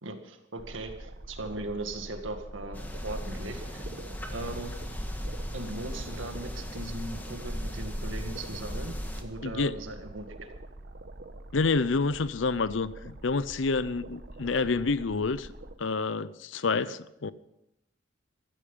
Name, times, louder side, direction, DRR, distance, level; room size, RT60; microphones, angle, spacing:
voice 1, 0.0-3.8 4.3-4.7 5.5-10.3 16.9-17.0, right 2 dB, 80° right, 2.0 m, -39 dB
sound 1, 0.6-15.8, right 1 dB, 55° right, 1.2 m, -45 dB
sound 2, 2.7-9.2, equal, 10° left, 1.6 m, -37 dB
voice 2, 9.4-9.7 11.5-15.5 15.8-17.3, left 4 dB, 75° left, 0.6 m, -28 dB
15.5 x 14.0 x 5.5 m
head